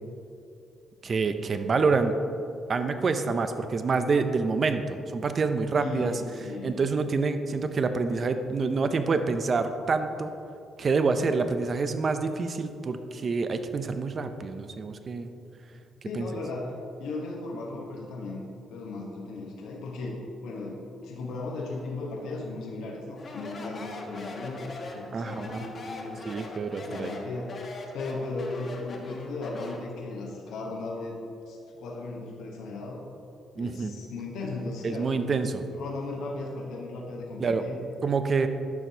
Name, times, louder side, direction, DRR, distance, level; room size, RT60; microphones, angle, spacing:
voice 1, 1.0-2.1 2.7-6.1 6.6-10.3 10.8-15.3 16.1-16.3 25.1-25.7 26.2-27.1 33.6-33.9 34.8-35.6 37.4-37.6 38.0-38.5, right 4 dB, 45° right, 9 dB, 0.5 m, -27 dB
voice 2, 5.7-6.8 16.0-26.2 26.9-27.6 27.9-31.2 31.5-33.0 33.6-35.2 35.5-37.8, left 3 dB, 85° left, -1 dB, 0.9 m, -36 dB
Speech, 23.2-29.9, left 2 dB, 50° left, 1.1 m, -40 dB
10.5 x 6.0 x 2.7 m, 2.6 s
cardioid pair, 90°, 0 cm